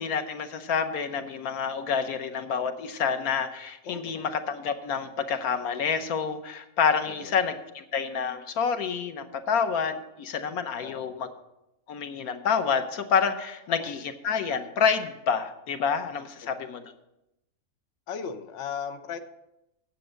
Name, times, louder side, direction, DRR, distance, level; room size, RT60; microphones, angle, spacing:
voice 1, 0.0-11.3 11.9-16.8, left 6 dB, 90° left, 8 dB, 1.3 m, -28 dB
voice 2, 3.8-4.3 7.1-7.4 10.8-11.1 13.7-13.9 16.4-16.5 18.1-19.2, left 7 dB, 60° left, 7 dB, 1.1 m, -37 dB
9.0 x 7.8 x 6.3 m, 0.88 s
omnidirectional pair, 1.5 m